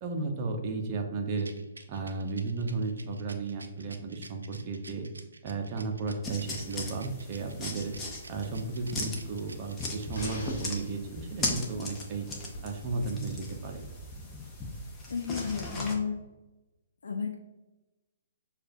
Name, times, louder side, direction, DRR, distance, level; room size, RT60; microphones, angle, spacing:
voice 1, 0.0-1.5 1.9-5.1 5.4-7.9 8.3-12.3 12.6-13.8, right 3 dB, 35° right, 3 dB, 0.7 m, -34 dB
Rattle, 1.4-10.9, right 3 dB, 85° right, 0.5 m, -50 dB
sound 1, 6.2-16.0, left 2 dB, 15° left, 0.7 m, -38 dB
sound 2, 10.1-11.0 12.5-12.6, left 1 dB, 40° left, 1.5 m, -41 dB
voice 2, 15.1-16.1 17.0-17.4, left 6 dB, 75° left, 2 dB, 0.5 m, -32 dB
6.4 x 2.4 x 2.6 m, 1.1 s
hypercardioid pair, 135°, 0 cm